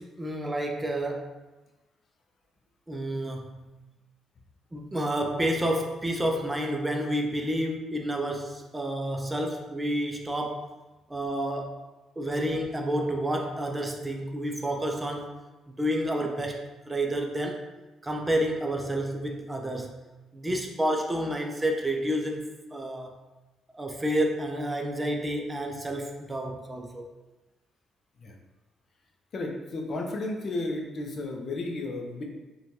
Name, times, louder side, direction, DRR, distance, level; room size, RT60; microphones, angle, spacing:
voice 1, 0.0-1.4 2.9-3.7 4.7-10.7 11.1-11.8 12.2-15.4 15.8-17.6 18.0-19.9 20.3-23.2 23.7-27.1, right 1 dB, 15° right, 2 dB, 0.4 m, -30 dB
voice 2, 29.3-32.2, left 2 dB, 50° left, 1 dB, 0.5 m, -33 dB
3.0 x 2.2 x 2.6 m, 1.1 s
cardioid pair, 90°, 0 cm